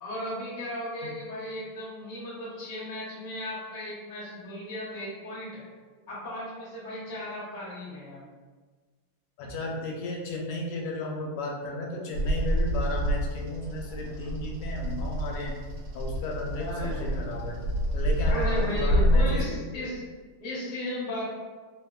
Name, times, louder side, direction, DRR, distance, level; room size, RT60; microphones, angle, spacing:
voice 1, 0.0-5.6 6.1-8.2 16.5-17.2 18.3-20.0 20.4-21.4, equal, 55° left, -8 dB, 0.5 m, -35 dB
voice 2, 9.4-15.6 15.9-17.6 17.9-19.6, left 2 dB, 85° left, -1 dB, 1.5 m, -34 dB
Bird vocalization bird call bird song, 12.1-19.4, equal, 75° right, 1.1 m, -27 dB
3.5 x 2.1 x 2.2 m, 1.4 s
omnidirectional pair, 2.4 m